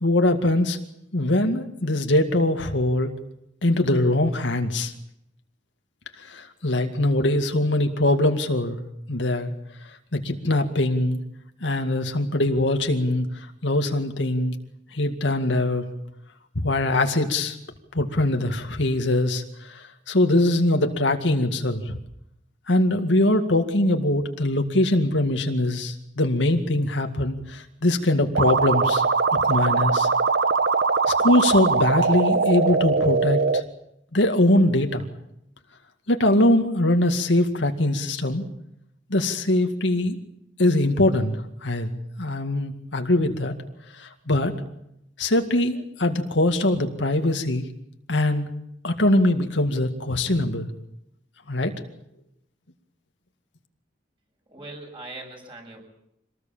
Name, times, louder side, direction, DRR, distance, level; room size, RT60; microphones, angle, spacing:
voice 1, 0.0-0.8 1.1-3.1 3.6-4.9 6.2-8.8 9.1-9.5 10.1-11.2 11.6-13.3 13.6-14.5 14.9-15.9 16.6-17.6 17.9-22.0 22.7-29.0 29.3-30.1 31.2-33.6 34.1-35.0 36.1-38.4 39.1-40.2 40.6-43.5 44.0-44.5 45.2-47.6 48.1-48.4 48.8-50.7 51.5-51.7, left 1 dB, 80° left, 5 dB, 2.1 m, -22 dB
sound 1, 28.4-33.6, right 4 dB, 60° right, 0.9 m, -21 dB
voice 2, 54.5-55.8, right 2 dB, 30° right, 1 dB, 7.1 m, -40 dB
25.5 x 19.5 x 7.4 m, 0.80 s
head